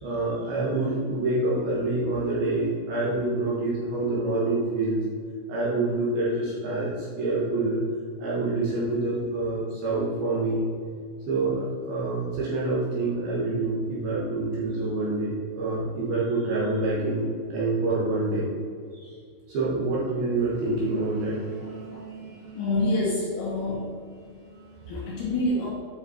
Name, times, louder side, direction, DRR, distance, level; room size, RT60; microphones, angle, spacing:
voice 1, 0.0-5.0 5.5-7.8 8.2-10.7 11.3-18.5 18.9-19.1 19.5-22.8 23.5-23.6 24.2-25.4, right 2 dB, 60° right, -7 dB, 2.9 m, -27 dB
voice 2, 22.6-23.9 24.9-25.7, left 2 dB, 70° left, -5 dB, 2.7 m, -26 dB
9.1 x 5.7 x 4.3 m, 2.1 s
omnidirectional pair, 5.7 m